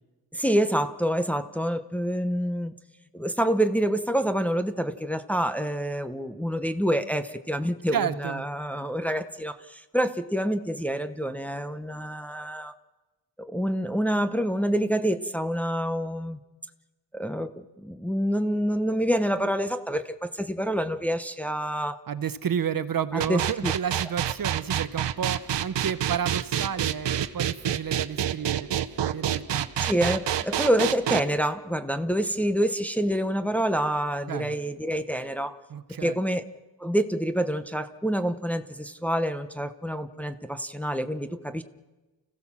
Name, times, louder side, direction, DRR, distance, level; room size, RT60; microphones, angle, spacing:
voice 1, 0.3-2.7 3.1-12.7 13.4-16.4 17.1-22.0 23.1-23.7 29.8-35.6 36.0-36.4 36.8-41.6, equal, 5° left, 8 dB, 0.8 m, -27 dB
voice 2, 7.9-8.4 22.1-29.7 34.3-34.5 35.7-36.2, right 8 dB, 50° right, 14 dB, 0.9 m, -31 dB
sound 1, 23.2-31.2, right 10 dB, 75° right, 1.0 m, -27 dB
29.5 x 16.0 x 7.3 m, 1.1 s
wide cardioid pair, 165°, 43 cm